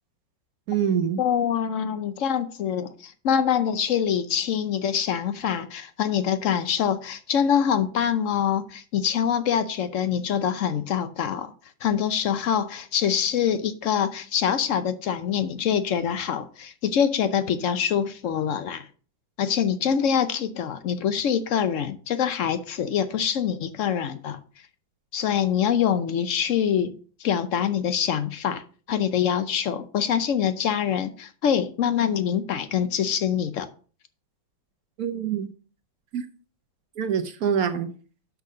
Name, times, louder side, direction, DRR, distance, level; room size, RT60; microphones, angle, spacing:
voice 1, 0.7-1.2 35.0-35.5 36.1-36.2 37.0-37.9, right 8 dB, 60° right, 1.1 m, -25 dB
voice 2, 1.2-11.5 11.8-18.9 19.4-24.4 25.1-26.9 27.2-33.7, left 8 dB, 75° left, 0.7 m, -25 dB
6.3 x 5.6 x 6.3 m
omnidirectional pair, 2.1 m